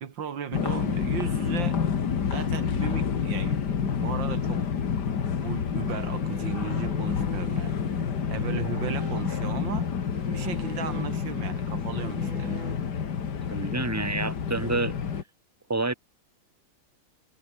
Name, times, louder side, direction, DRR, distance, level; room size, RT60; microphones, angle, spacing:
voice 1, 0.0-1.8 2.3-4.6 5.4-7.8 8.3-9.9 10.3-12.6, right 7 dB, 85° right, 2.5 m, -35 dB
sound 1, 0.5-15.2, left 7 dB, 65° left, 2.3 m, -29 dB
sound 2, 5.8-13.3, right 2 dB, 40° right, 7.2 m, -44 dB
voice 2, 13.5-15.0 15.7-15.9, right 2 dB, 10° right, 2.3 m, -28 dB
omnidirectional pair, 2.0 m